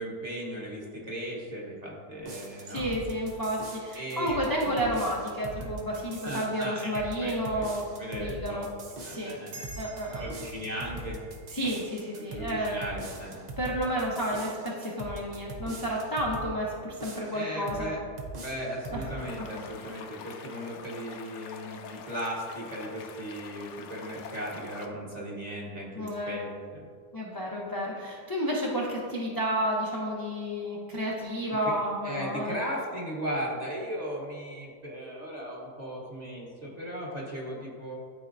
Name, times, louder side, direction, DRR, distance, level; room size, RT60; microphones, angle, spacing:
voice 1, 0.0-2.9 3.9-4.7 5.6-5.7 6.2-7.7 8.0-9.7 10.2-11.2 12.2-13.5 17.3-18.0 18.4-26.9 32.0-38.0, equal, 30° right, -4 dB, 1.1 m, -37 dB
sound 1, 2.2-16.5 17.0-17.9 18.2-19.2, right 2 dB, 60° right, 0.4 m, -42 dB
voice 2, 2.7-8.7 9.1-9.4 9.8-10.2 11.5-12.8 13.6-17.9 18.9-19.1 19.5-19.6 25.9-26.4 27.1-32.6, equal, 30° left, -4 dB, 0.4 m, -31 dB
sound 2, 9.5-14.2, right 2 dB, 80° right, 1.5 m, -51 dB
sound 3, 19.2-24.9, left 5 dB, 65° left, 0.7 m, -45 dB
12.0 x 4.3 x 2.6 m, 2.1 s
omnidirectional pair, 1.7 m